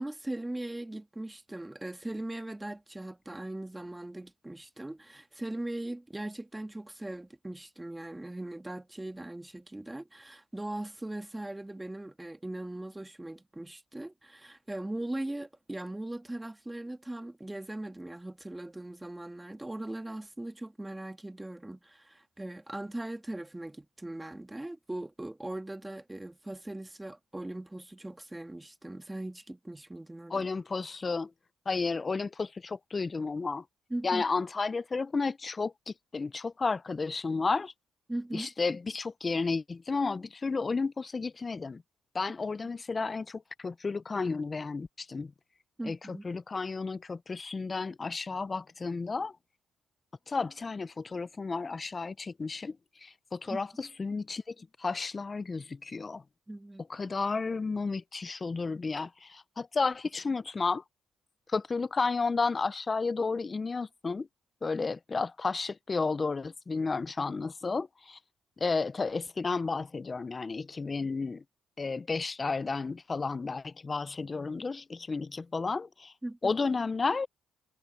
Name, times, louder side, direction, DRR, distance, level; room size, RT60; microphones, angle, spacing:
voice 1, 0.0-30.5 33.9-34.2 38.1-38.5 45.8-46.3 53.5-53.6 56.5-56.8 76.2-76.5, right 1 dB, 10° right, 1.7 m, -39 dB
voice 2, 30.3-31.3 31.7-33.6 34.0-37.7 38.3-41.8 42.1-45.3 45.8-49.4 50.3-56.2 56.9-60.8 61.5-64.3 64.6-68.2 68.6-71.4 71.8-76.1 76.4-77.3, left 4 dB, 30° left, 0.4 m, -32 dB
cardioid pair, 90°, 0 cm